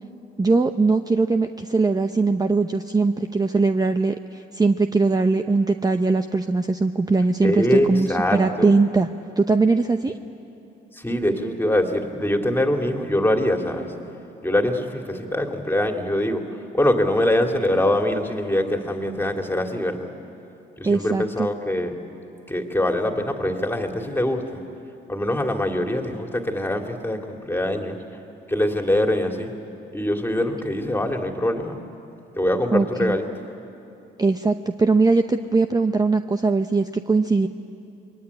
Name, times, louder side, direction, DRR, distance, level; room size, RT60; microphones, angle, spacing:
voice 1, 0.4-9.1 9.4-10.2 20.8-21.5 32.7-33.2 34.2-37.5, right 3 dB, 20° right, 7 dB, 0.8 m, -20 dB
voice 2, 7.4-8.7 10.9-13.9 14.4-20.1 20.8-22.0 22.5-24.6 25.1-28.0 28.5-29.5 29.9-31.8 32.4-33.3, left 1 dB, 10° left, 3 dB, 2.7 m, -23 dB
26.0 x 22.0 x 9.9 m, 2.8 s
cardioid pair, 90°, 20 cm